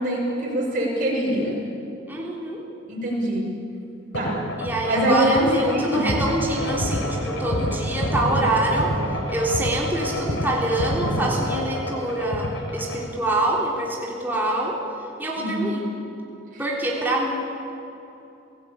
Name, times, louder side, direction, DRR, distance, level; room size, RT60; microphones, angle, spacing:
voice 1, 0.0-1.6 2.9-3.5 4.1-4.4 4.9-6.1 15.4-15.7 16.5-16.6, right 1 dB, 40° right, -2 dB, 6.7 m, -23 dB
voice 2, 2.1-2.6 4.6-8.9 9.3-14.8 15.2-15.8 16.6-17.3, right 1 dB, 10° right, -3 dB, 3.5 m, -25 dB
sound 1, 4.1-13.0, equal, 75° left, 4.6 m, -27 dB
27.5 x 17.0 x 8.7 m, 2.9 s
head